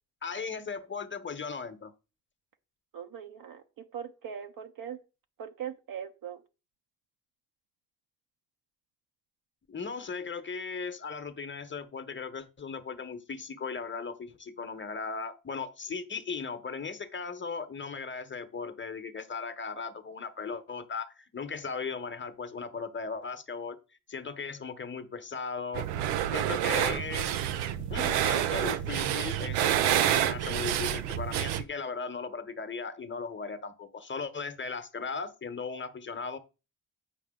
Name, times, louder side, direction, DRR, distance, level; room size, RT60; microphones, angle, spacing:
voice 1, 0.2-1.9 9.7-23.8 24.1-25.9 26.3-27.3 27.9-36.4, left 5 dB, 30° left, 1.2 m, -37 dB
voice 2, 2.9-5.0 5.4-6.4, right 8 dB, 60° right, 1.0 m, -40 dB
sound 1, 25.7-31.6, right 11 dB, 80° right, 0.7 m, -28 dB
8.4 x 5.4 x 3.8 m
hypercardioid pair, 50°, 38 cm